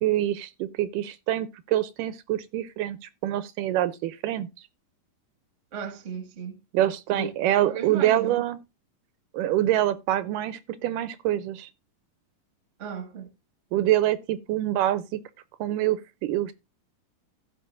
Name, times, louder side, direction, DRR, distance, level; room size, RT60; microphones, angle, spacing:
voice 1, 0.0-4.5 6.7-8.6 9.3-11.7 13.7-15.2 15.6-16.5, right 13 dB, 80° right, 2.2 m, -25 dB
voice 2, 5.7-6.6 7.1-7.3 7.6-8.4 12.8-13.3, right 6 dB, 30° right, 1.5 m, -35 dB
15.5 x 6.1 x 2.5 m
omnidirectional pair, 3.9 m